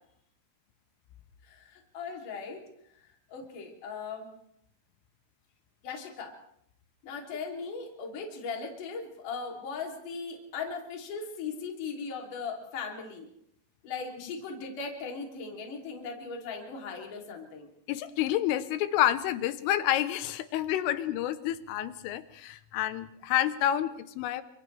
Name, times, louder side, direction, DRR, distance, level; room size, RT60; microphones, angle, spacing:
voice 1, 1.4-2.6 3.0-4.3 5.8-6.3 7.0-13.3 13.8-17.7, left 5 dB, 45° left, 0 dB, 4.3 m, -38 dB
voice 2, 17.9-24.4, left 12 dB, 80° left, 11 dB, 3.5 m, -29 dB
30.0 x 25.5 x 3.4 m, 0.72 s
omnidirectional pair, 5.9 m